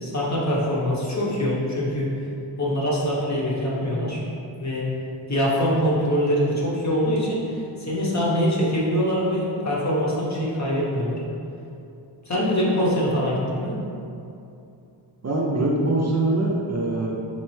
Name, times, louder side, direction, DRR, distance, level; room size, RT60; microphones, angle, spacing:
voice 1, 0.0-2.1 2.6-4.2 4.6-4.8 5.3-11.2 12.3-13.7, equal, 40° left, -6 dB, 0.9 m, -23 dB
voice 2, 15.2-17.1, right 2 dB, 40° right, -3 dB, 0.5 m, -23 dB
4.3 x 3.2 x 3.1 m, 2.7 s
wide cardioid pair, 120°, 45 cm